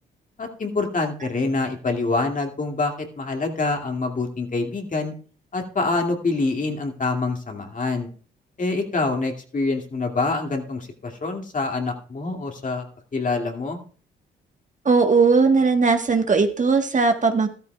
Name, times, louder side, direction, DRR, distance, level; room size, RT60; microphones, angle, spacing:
voice 1, 0.4-5.1 5.5-8.1 8.6-12.9 13.1-13.8, left 3 dB, 40° left, 4 dB, 2.4 m, -26 dB
voice 2, 14.8-17.5, right 4 dB, 40° right, 6 dB, 1.4 m, -18 dB
13.5 x 13.0 x 2.3 m, 0.42 s
supercardioid pair, 60°, 20 cm